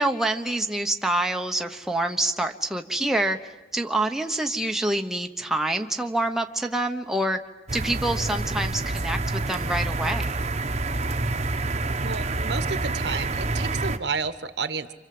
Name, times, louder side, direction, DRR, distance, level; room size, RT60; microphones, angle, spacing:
voice 1, 0.0-3.4 3.7-7.4 7.7-10.3, right 1 dB, 5° right, 3 dB, 1.1 m, -26 dB
Cars ambience passing R-L on wet road, 7.7-14.0, right 2 dB, 40° right, 1.1 m, -27 dB
voice 2, 12.0-14.9, right 5 dB, 80° right, 11 dB, 1.3 m, -31 dB
28.5 x 26.0 x 7.8 m, 1.1 s
head